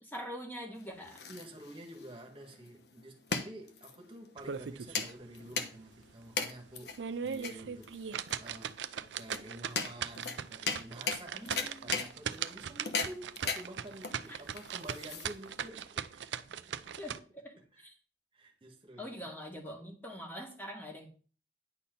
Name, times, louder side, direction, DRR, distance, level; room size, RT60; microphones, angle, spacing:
voice 1, 0.0-1.2 11.3-12.1 14.3-14.4 17.0-17.9 19.0-21.1, equal, 10° left, 1.9 m, -44 dB
sound 1, 0.7-15.7, left 5 dB, 65° left, 1.0 m, -39 dB
voice 2, 1.3-8.0 8.4-17.1 17.6-17.9 18.3-19.1, right 1 dB, 30° right, 1.6 m, -49 dB
sound 2, 4.4-5.1 5.5-5.6 6.1-6.2 6.8-17.2, right 8 dB, 90° right, 0.5 m, -39 dB
9.8 x 4.3 x 5.3 m
head